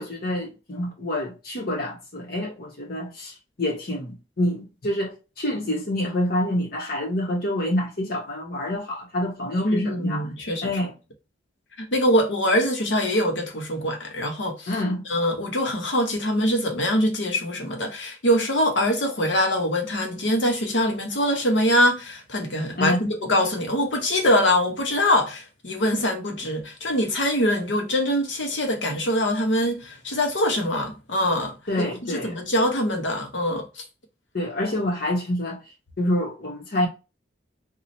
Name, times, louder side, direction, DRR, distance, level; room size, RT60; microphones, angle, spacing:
voice 1, 0.0-10.2 10.6-10.9 14.7-15.0 22.8-23.0 31.7-32.4 34.3-35.6 36.0-36.9, left 1 dB, 55° left, 1.1 m, -27 dB
voice 2, 9.6-10.7 11.8-14.7 15.1-31.5 32.0-33.8, equal, 85° left, 1.0 m, -23 dB
3.1 x 2.4 x 4.2 m
head